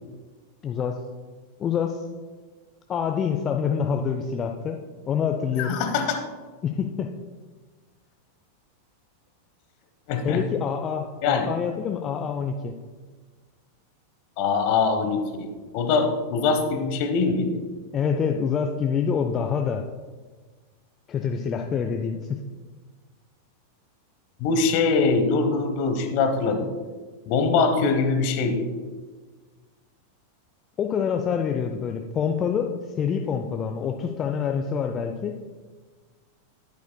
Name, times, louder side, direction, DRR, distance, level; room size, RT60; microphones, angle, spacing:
voice 1, 0.6-1.0 1.6-2.0 2.9-4.8 5.1-5.8 6.6-7.1 10.2-12.7 17.9-19.8 21.1-22.4 30.8-32.7 33.0-35.4, left 7 dB, 25° left, 4 dB, 0.5 m, -26 dB
voice 2, 5.6-6.2 10.1-10.4 11.2-11.5 14.4-17.6 24.4-26.7 27.3-28.7, left 4 dB, 45° left, 7 dB, 1.0 m, -23 dB
10.5 x 8.7 x 2.2 m, 1.4 s
figure-of-eight pair, 90°, 0 cm